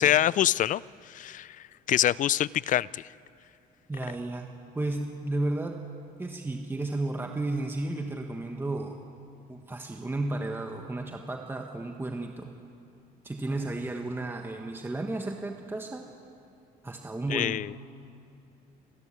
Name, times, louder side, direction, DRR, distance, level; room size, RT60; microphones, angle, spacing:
voice 1, 0.0-1.6 1.9-3.1 17.3-17.7, left 12 dB, 50° left, 21 dB, 0.4 m, -25 dB
voice 2, 3.9-4.5 4.7-5.8 6.2-9.0 9.5-12.5 13.2-16.1 16.8-17.6, right 2 dB, 15° right, 3 dB, 1.5 m, -33 dB
28.0 x 13.5 x 9.9 m, 2.7 s
cardioid pair, 110°, 17 cm